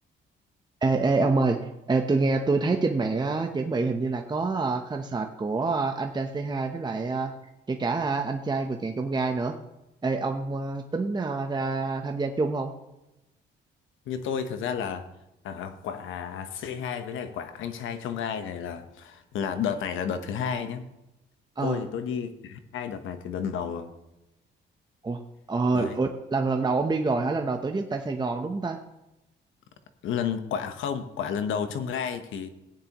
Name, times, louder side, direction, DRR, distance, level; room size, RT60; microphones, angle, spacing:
voice 1, 0.8-1.6 1.9-7.3 7.7-9.5 10.0-12.7 21.6-21.8 25.0-25.2 25.5-28.8, right 3 dB, 20° right, 4 dB, 0.8 m, -26 dB
voice 2, 14.1-15.1 15.4-20.9 21.6-23.9 25.7-26.0 30.0-32.5, left 7 dB, 80° left, 9 dB, 1.0 m, -31 dB
15.5 x 9.6 x 3.0 m, 0.94 s
cardioid pair, 90°, 20 cm